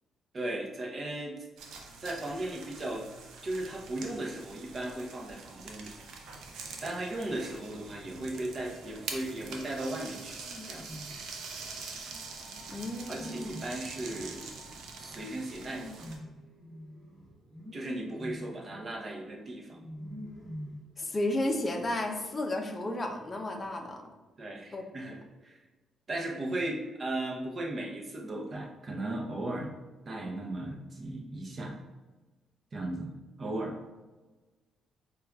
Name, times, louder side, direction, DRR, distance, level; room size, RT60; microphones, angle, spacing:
voice 1, 0.3-1.3 2.0-3.1 3.4-5.9 6.8-10.9 13.1-14.5 15.0-15.9 17.7-19.8 24.4-25.5 26.1-29.7 30.1-31.7 32.7-33.1 33.4-33.7, right 1 dB, 40° right, 1 dB, 0.7 m, -36 dB
sound 1, 1.6-16.2, right 4 dB, 75° right, 0.5 m, -45 dB
sound 2, 10.3-11.3 12.0-21.2, equal, 5° right, 0.9 m, -47 dB
voice 2, 12.7-13.5 21.0-24.0 24.7-25.2, left 1 dB, 25° left, 3 dB, 0.5 m, -33 dB
5.0 x 2.3 x 2.3 m, 1.2 s
cardioid pair, 90°, 0 cm